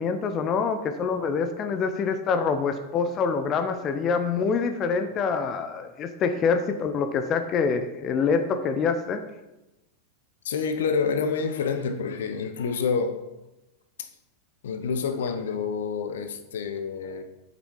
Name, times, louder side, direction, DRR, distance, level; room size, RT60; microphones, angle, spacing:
voice 1, 0.0-9.2, left 5 dB, 30° left, 8 dB, 0.7 m, -25 dB
voice 2, 10.4-13.2 14.0-14.1 14.6-17.2, left 5 dB, 60° left, 8 dB, 0.9 m, -28 dB
7.8 x 6.9 x 4.8 m, 0.97 s
figure-of-eight pair, 90°, 0 cm